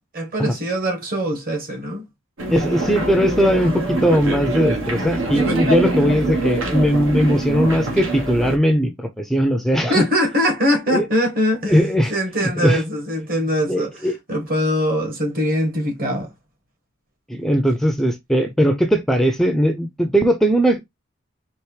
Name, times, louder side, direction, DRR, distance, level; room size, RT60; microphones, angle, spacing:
voice 1, 0.1-2.0 9.9-14.0 14.3-16.3, equal, 45° right, 1.5 m, -22 dB
sound 1, 2.4-8.6, right 2 dB, 80° right, 1.1 m, -24 dB
voice 2, 2.5-10.1 10.9-11.1 11.7-12.1 12.4-12.8 13.7-14.2 17.3-20.8, equal, ahead, 0.4 m, -19 dB
4.5 x 3.0 x 3.2 m
head